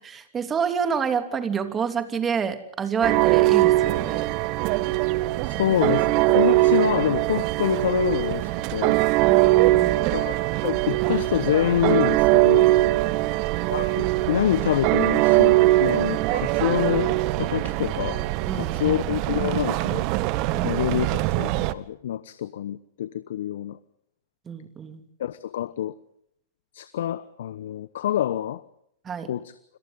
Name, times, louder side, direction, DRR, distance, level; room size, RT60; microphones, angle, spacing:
voice 1, 0.0-4.3 5.6-5.7 9.2-10.2 13.1-13.5 18.5-19.0 20.5-20.8 24.5-25.0 29.0-29.3, right 6 dB, 20° right, 8 dB, 3.1 m, -28 dB
sound 1, 3.0-21.7, right 19 dB, 45° right, 1.2 m, -22 dB
voice 2, 5.4-9.0 10.1-12.7 13.7-18.2 18.5-20.1 20.6-23.8 25.2-25.9 26.7-28.6 29.3-29.5, left 11 dB, 65° left, 15 dB, 1.0 m, -26 dB
30.0 x 25.5 x 3.9 m, 0.72 s
hypercardioid pair, 105°, 0 cm